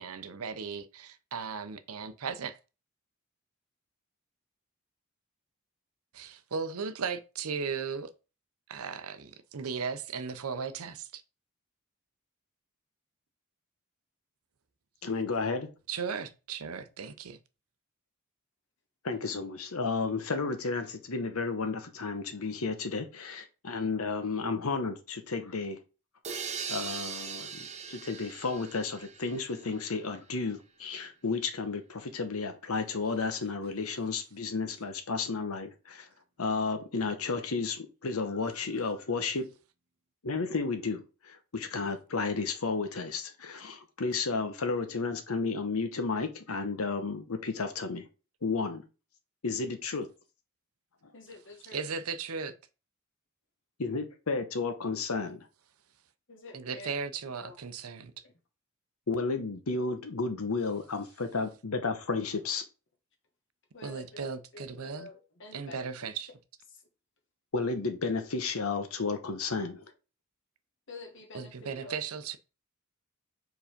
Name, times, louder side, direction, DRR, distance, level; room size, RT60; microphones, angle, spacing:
voice 1, 0.0-2.6 6.1-8.1 8.7-11.2 15.9-17.4 51.6-52.5 56.5-58.1 63.8-65.1 65.5-66.3 71.3-72.4, right 5 dB, 80° right, 0.7 m, -36 dB
voice 2, 15.0-15.7 19.0-25.8 26.7-36.1 36.4-39.5 40.2-48.1 48.4-48.8 49.4-50.1 53.8-55.5 59.1-62.6 67.5-69.8, left 4 dB, 75° left, 1.0 m, -32 dB
sound 1, 26.2-30.0, right 6 dB, 30° right, 0.7 m, -40 dB
voice 3, 51.1-51.8 56.3-57.0 57.4-57.5 63.7-65.8 70.9-71.5 71.8-72.0, left 2 dB, 60° left, 1.5 m, -47 dB
5.0 x 4.0 x 5.1 m
head